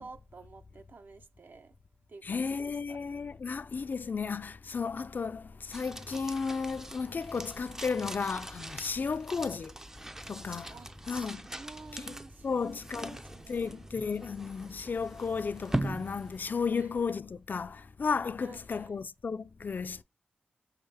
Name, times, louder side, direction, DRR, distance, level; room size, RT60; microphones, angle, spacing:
voice 1, 0.0-1.7 2.1-3.0 9.1-9.3 10.7-10.9 11.5-13.8 16.7-16.9 18.4-18.9, right 3 dB, 65° right, 0.5 m, -51 dB
voice 2, 2.2-9.7 10.3-10.7 11.1-11.4 11.9-12.1 12.4-13.2 13.5-20.0, left 5 dB, 55° left, 0.4 m, -34 dB
sound 1, 5.7-17.1, right 1 dB, 15° right, 0.4 m, -41 dB
5.7 x 2.8 x 3.3 m
cardioid pair, 55°, 4 cm